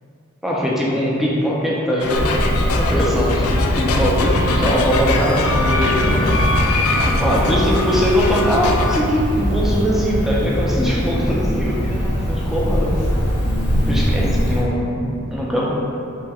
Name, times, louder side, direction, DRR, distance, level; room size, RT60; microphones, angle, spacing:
voice 1, 0.4-2.3 2.7-6.4 7.0-13.0 13.9-15.7, equal, ahead, -5 dB, 0.5 m, -21 dB
sound 1, 2.0-9.0, left 2 dB, 90° left, 0.3 m, -22 dB
Cricket, 2.1-14.6, equal, 60° left, 0.9 m, -22 dB
5.3 x 2.1 x 2.4 m, 2.7 s
head